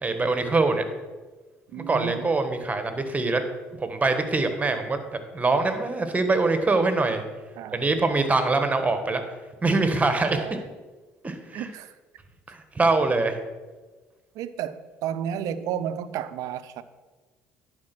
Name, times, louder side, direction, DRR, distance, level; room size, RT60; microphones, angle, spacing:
voice 1, 0.0-0.8 1.7-3.4 3.8-5.0 5.3-7.2 7.7-9.2 9.6-10.5 11.2-11.7 12.5-13.4, right 3 dB, 25° right, 1.5 m, -23 dB
voice 2, 1.7-2.3 7.6-7.9 10.3-10.6 11.5-11.9 14.4-16.8, right 9 dB, 65° right, 0.6 m, -32 dB
10.5 x 5.1 x 6.0 m
hypercardioid pair, 60°, 6 cm